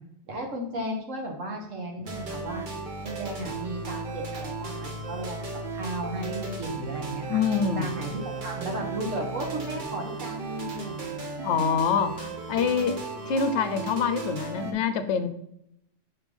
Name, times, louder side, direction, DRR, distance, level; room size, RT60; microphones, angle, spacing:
voice 1, 0.3-2.7 3.0-5.4 5.7-7.4 7.7-11.1, right 1 dB, 85° right, 1 dB, 1.7 m, -34 dB
sound 1, 2.0-14.7, right 3 dB, 45° right, 0.9 m, -35 dB
voice 2, 7.3-7.9 11.4-15.3, left 6 dB, 70° left, 10 dB, 0.8 m, -26 dB
5.7 x 3.3 x 5.2 m, 0.76 s
omnidirectional pair, 1.3 m